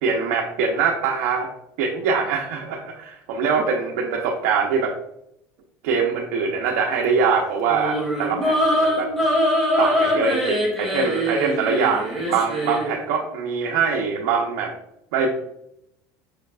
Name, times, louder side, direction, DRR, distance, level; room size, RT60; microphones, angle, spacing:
voice 1, 0.0-1.5 1.8-4.9 5.8-9.1 9.8-14.7 15.1-15.3, right 5 dB, 80° right, 1 dB, 0.7 m, -23 dB
sound 1, 7.6-12.9, equal, ahead, 1.8 m, -22 dB
6.3 x 3.2 x 2.4 m, 0.77 s
supercardioid pair, 125°, 8 cm